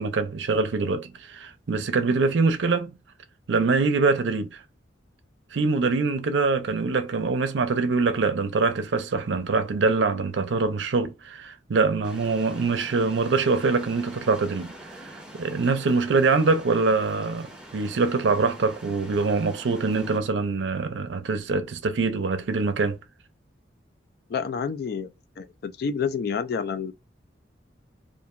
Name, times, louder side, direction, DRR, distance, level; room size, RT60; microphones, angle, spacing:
voice 1, 0.0-2.9 3.5-4.6 5.5-14.7 15.0-17.5 17.7-23.0, right 4 dB, 80° right, 0.5 m, -24 dB
sound 1, 12.0-20.2, right 1 dB, 5° right, 0.6 m, -44 dB
voice 2, 24.3-25.1 25.4-26.9, left 6 dB, 55° left, 0.3 m, -29 dB
2.8 x 2.5 x 2.4 m
head